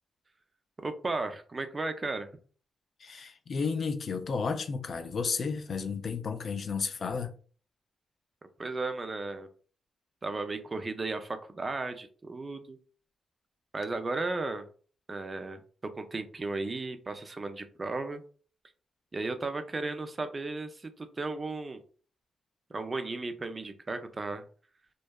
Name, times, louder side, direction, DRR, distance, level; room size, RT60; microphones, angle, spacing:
voice 1, 0.8-2.3 8.6-9.5 10.2-12.8 13.7-14.7 15.1-18.2 19.1-21.8 22.7-24.4, right 3 dB, 30° right, 0.3 m, -35 dB
voice 2, 3.0-7.3, left 5 dB, 50° left, 0.3 m, -32 dB
2.6 x 2.2 x 2.2 m
cardioid pair, 100°, 0 cm